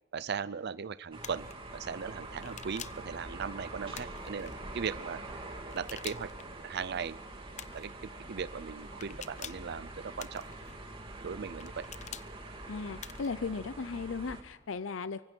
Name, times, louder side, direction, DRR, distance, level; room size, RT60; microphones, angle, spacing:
voice 1, 0.1-5.2 5.7-6.3 6.6-7.2 7.7-10.4 11.2-11.9, right 6 dB, 60° right, 15 dB, 0.5 m, -38 dB
sound 1, 1.1-14.4, right 2 dB, 30° right, 3.3 m, -45 dB
sound 2, 1.2-1.5 2.4-3.1 3.9-4.5 5.7-6.5 7.6-7.9 9.0-9.7 10.2-10.8 11.6-12.3 13.0-13.4, left 9 dB, 35° left, 0.8 m, -46 dB
voice 2, 12.7-15.2, left 4 dB, 80° left, 14 dB, 0.6 m, -36 dB
25.0 x 23.5 x 4.5 m, 1.2 s
head